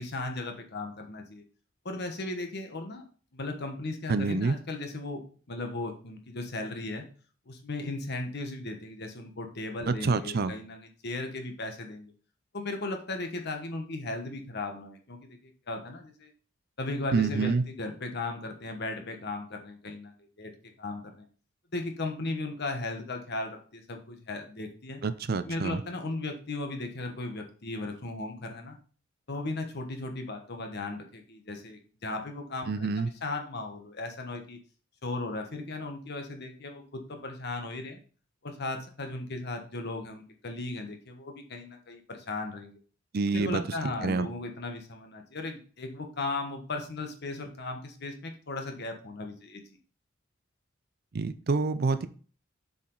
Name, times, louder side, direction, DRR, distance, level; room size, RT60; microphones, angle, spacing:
voice 1, 0.0-1.4 1.8-3.0 3.3-7.0 7.5-12.1 12.5-16.3 16.8-20.5 20.8-21.2 21.7-25.0 25.4-28.8 29.3-32.9 33.2-34.6 35.0-38.0 38.4-42.8 43.3-49.6, left 2 dB, 55° left, 4 dB, 1.2 m, -36 dB
voice 2, 4.1-4.5 9.9-10.5 17.1-17.6 25.0-25.8 32.7-33.1 43.1-43.6 44.0-44.3 51.1-52.1, right 4 dB, 50° right, 12 dB, 0.5 m, -27 dB
6.9 x 4.9 x 3.9 m, 0.40 s
head